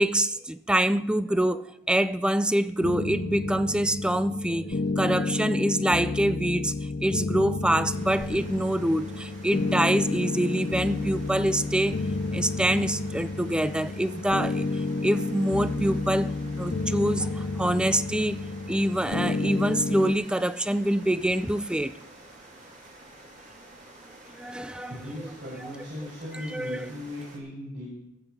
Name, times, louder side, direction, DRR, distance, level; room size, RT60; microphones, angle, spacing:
voice 1, 0.0-6.7 7.0-12.0 12.3-22.0 24.4-24.9 26.3-26.9, right 1 dB, 5° right, 0.3 m, -26 dB
sound 1, 2.8-20.1, left 3 dB, 50° left, 0.6 m, -30 dB
sound 2, 7.9-27.4, right 2 dB, 40° right, 2.4 m, -49 dB
voice 2, 24.7-27.9, left 1 dB, 70° right, 6.3 m, -38 dB
19.5 x 8.1 x 4.5 m
head